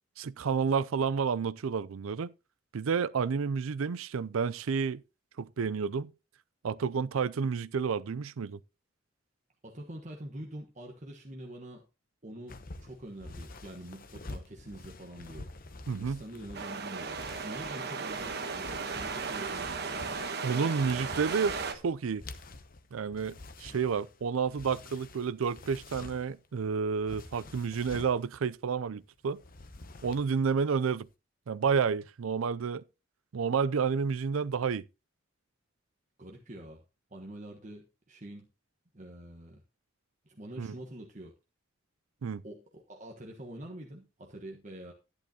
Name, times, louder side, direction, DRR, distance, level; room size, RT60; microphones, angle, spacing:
voice 1, 0.2-2.3 2.7-5.0 5.4-6.1 6.6-8.6 15.9-16.2 20.4-21.6 21.8-22.2 22.9-29.4 30.0-31.1 31.5-32.8 33.3-34.8 40.6-40.7 42.2-42.4, right 6 dB, 90° right, 0.5 m, -30 dB
voice 2, 9.6-11.8 12.2-15.5 15.9-19.9 36.2-36.8 37.1-38.4 38.9-39.6 40.2-41.3 42.4-44.9, right 1 dB, 35° right, 1.3 m, -45 dB
sound 1, 12.5-26.5 27.0-28.2 29.3-30.5 30.7-31.0, left 2 dB, 45° left, 0.9 m, -48 dB
sound 2, 16.5-21.7, right 4 dB, 50° right, 1.2 m, -36 dB
11.5 x 10.5 x 2.9 m
head